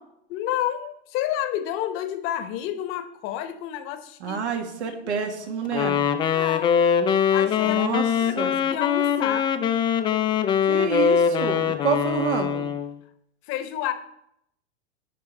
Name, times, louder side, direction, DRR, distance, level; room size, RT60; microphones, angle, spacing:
voice 1, 0.3-4.4 4.8-5.2 6.3-6.7 7.3-7.8 8.3-9.5 13.5-13.9, left 11 dB, 40° left, 10 dB, 0.9 m, -30 dB
voice 2, 4.2-6.0 7.6-8.1 8.4-8.5 10.7-12.6, right 6 dB, 85° right, 4 dB, 1.8 m, -28 dB
Wind instrument woodwind instrument, 5.7-12.9, left 8 dB, 15° left, 0.3 m, -22 dB
11.0 x 3.7 x 6.5 m, 0.75 s
hypercardioid pair, 125°, 33 cm